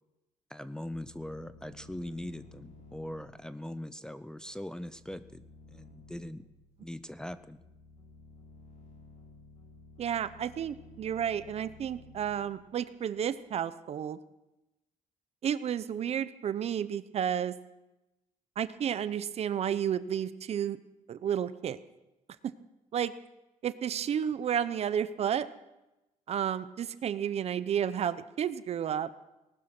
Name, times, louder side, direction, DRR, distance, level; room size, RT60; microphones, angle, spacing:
voice 1, 0.5-6.5 6.8-7.6, left 1 dB, 5° left, 11 dB, 0.5 m, -41 dB
sound 1, 0.9-13.4, left 3 dB, 65° left, 7.3 m, -55 dB
voice 2, 10.0-14.2 15.4-17.5 18.6-20.8 21.1-21.8 22.4-22.5 22.9-23.1 23.6-25.5 26.3-29.1, right 9 dB, 50° right, 15 dB, 0.8 m, -31 dB
19.5 x 12.0 x 6.1 m, 0.97 s
cardioid pair, 125°, 14 cm